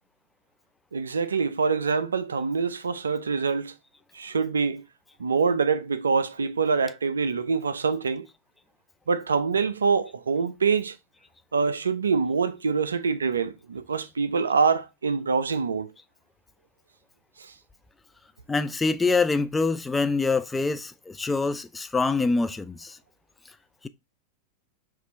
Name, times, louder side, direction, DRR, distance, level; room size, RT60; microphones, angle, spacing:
voice 1, 0.9-3.7 4.1-4.8 5.2-8.3 9.1-11.0 11.5-15.9 17.4-17.5, right 5 dB, 70° right, 0.4 m, -25 dB
voice 2, 18.5-23.0, left 3 dB, 10° left, 0.3 m, -25 dB
5.9 x 2.5 x 2.6 m
figure-of-eight pair, 90°, 0 cm